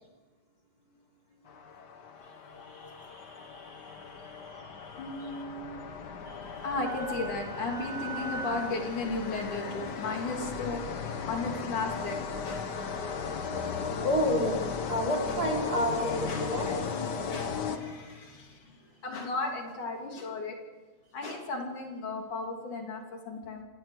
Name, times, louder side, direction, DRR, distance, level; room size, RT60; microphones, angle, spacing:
sound 1, 1.5-18.3, left 5 dB, 85° left, 0.9 m, -36 dB
voice 1, 2.6-5.4 6.3-6.7 12.9-13.0 14.0-16.7, left 1 dB, 25° right, 3 dB, 3.8 m, -32 dB
voice 2, 5.0-5.8 6.6-12.6 13.4-13.5 16.3-18.7 19.0-20.6 21.1-23.6, left 3 dB, 60° left, 1 dB, 4.4 m, -35 dB
Wind instrument woodwind instrument, 6.8-10.3, right 3 dB, 30° left, 2.8 m, -42 dB
26.5 x 19.0 x 6.5 m, 1.2 s
omnidirectional pair, 4.1 m